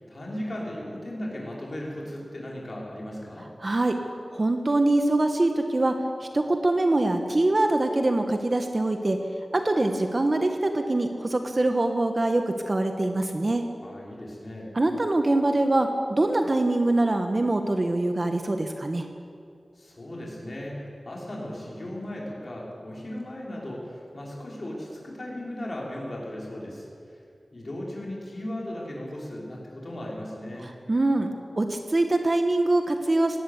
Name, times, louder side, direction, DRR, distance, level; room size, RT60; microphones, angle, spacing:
voice 1, 0.0-3.5 13.8-14.7 19.8-27.2 27.5-30.7, left 1 dB, 45° left, -3 dB, 5.5 m, -36 dB
voice 2, 3.6-4.0 4.3-6.0 6.3-9.2 9.5-13.7 14.7-19.1 30.9-33.4, right 2 dB, 40° right, 5 dB, 1.3 m, -24 dB
19.0 x 17.0 x 8.2 m, 2.4 s
wide cardioid pair, 95°, 0 cm